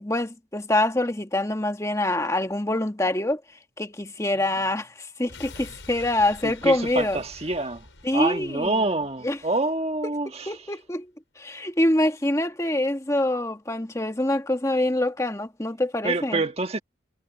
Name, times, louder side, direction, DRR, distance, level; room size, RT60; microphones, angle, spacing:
voice 1, 0.0-3.4 3.8-7.2 8.0-8.8 9.2-9.4 10.5-11.1 11.4-16.4, left 1 dB, 15° left, 1.4 m, -25 dB
sound 1, 5.3-10.2 10.5-10.6, left 3 dB, 85° left, 6.1 m, -46 dB
voice 2, 6.4-7.9 8.1-10.7 16.0-16.8, right 2 dB, 30° right, 1.4 m, -27 dB
head